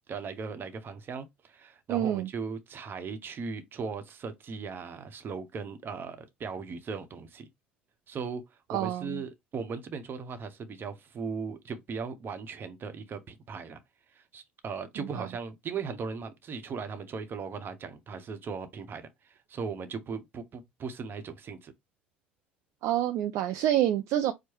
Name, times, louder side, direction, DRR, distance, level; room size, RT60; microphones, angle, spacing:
voice 1, 0.1-7.5 8.1-8.4 8.7-13.8 14.1-21.7, right 5 dB, 40° right, 0.9 m, -38 dB
voice 2, 1.9-2.3 8.7-9.2 15.2-15.3 22.8-24.3, right 12 dB, 55° right, 0.4 m, -27 dB
4.6 x 2.1 x 4.5 m
figure-of-eight pair, 60°, 6 cm